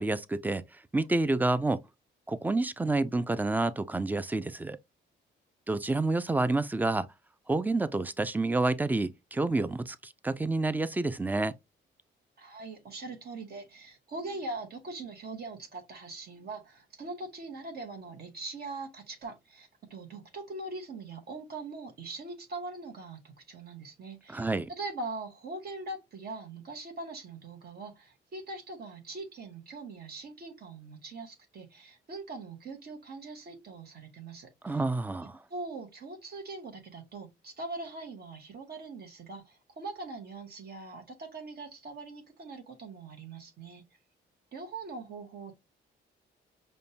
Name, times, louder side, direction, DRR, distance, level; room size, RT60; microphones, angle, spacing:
voice 1, 0.0-1.8 2.3-4.8 5.7-7.1 7.5-11.5 24.3-24.7 34.6-35.4, right 2 dB, 10° right, 0.3 m, -29 dB
voice 2, 12.4-34.8 35.5-43.8 44.5-45.5, right 3 dB, 55° right, 0.9 m, -42 dB
5.1 x 2.1 x 2.8 m
cardioid pair, 90°, 20 cm